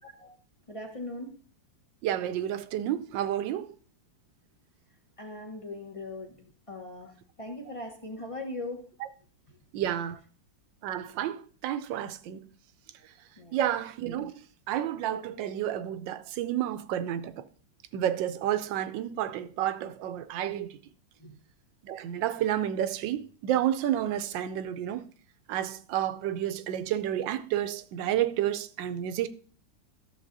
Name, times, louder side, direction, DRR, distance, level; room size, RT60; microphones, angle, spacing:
voice 1, 0.7-1.3 5.2-8.8 13.4-13.6 21.2-21.4, left 2 dB, 35° left, 0.5 m, -40 dB
voice 2, 2.0-3.7 9.7-10.2 10.8-12.5 13.5-14.3 14.7-17.4 17.9-20.8 21.8-25.1 25.5-29.3, right 11 dB, 80° right, 1.3 m, -30 dB
13.0 x 6.9 x 2.6 m
omnidirectional pair, 2.1 m